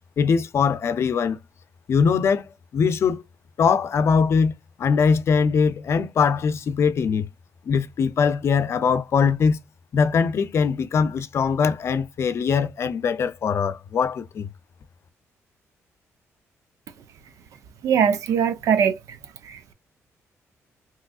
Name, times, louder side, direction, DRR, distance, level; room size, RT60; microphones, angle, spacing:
voice 1, 0.2-1.4 1.9-3.2 3.6-4.5 4.8-7.3 7.7-9.6 9.9-14.5, left 6 dB, 55° left, 0.5 m, -21 dB
voice 2, 17.8-19.2 19.4-19.7, right 7 dB, 75° right, 0.6 m, -22 dB
3.5 x 3.0 x 2.3 m
cardioid pair, 110°, 5 cm